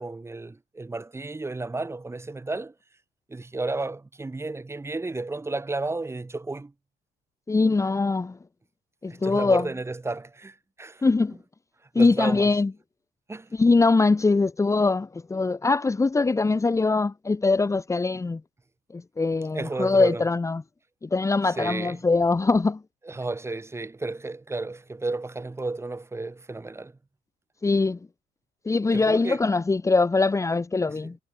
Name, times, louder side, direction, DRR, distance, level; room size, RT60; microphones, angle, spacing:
voice 1, 0.0-2.7 3.3-6.7 9.1-11.0 12.0-12.5 13.3-13.5 19.5-20.3 21.6-22.0 23.0-26.9 28.9-29.4 31.0-31.1, right 3 dB, 15° right, 3.5 m, -32 dB
voice 2, 7.5-8.4 9.0-9.7 11.0-11.4 12.0-12.7 13.5-18.4 18.9-20.6 21.0-22.8 27.6-28.0 28.7-31.2, left 3 dB, 15° left, 1.7 m, -22 dB
cardioid pair, 110°, 17 cm